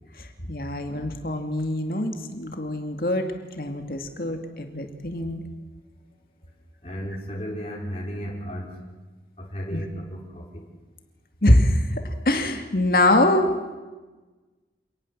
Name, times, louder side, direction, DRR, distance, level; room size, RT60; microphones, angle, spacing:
voice 1, 0.2-3.3 3.6-5.4 9.7-9.8 11.4-13.5, left 1 dB, 55° left, 5 dB, 2.3 m, -23 dB
voice 2, 6.8-8.7 9.4-10.7, equal, 35° left, -2 dB, 3.8 m, -34 dB
27.0 x 19.0 x 7.4 m, 1.2 s
head